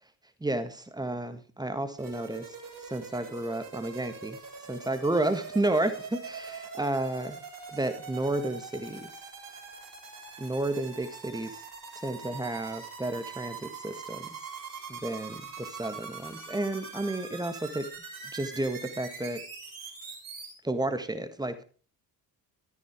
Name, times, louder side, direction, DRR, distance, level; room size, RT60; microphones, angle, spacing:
voice 1, 0.4-2.6 2.8-4.4 4.7-7.4 7.7-9.1 10.4-11.6 12.0-14.4 14.9-17.9 18.3-19.4 20.6-21.6, right 2 dB, 10° right, 10 dB, 1.7 m, -31 dB
sound 1, 2.0-20.5, right 5 dB, 40° right, 6.5 m, -43 dB
13.5 x 9.8 x 3.7 m, 0.38 s
figure-of-eight pair, 50°, 50 cm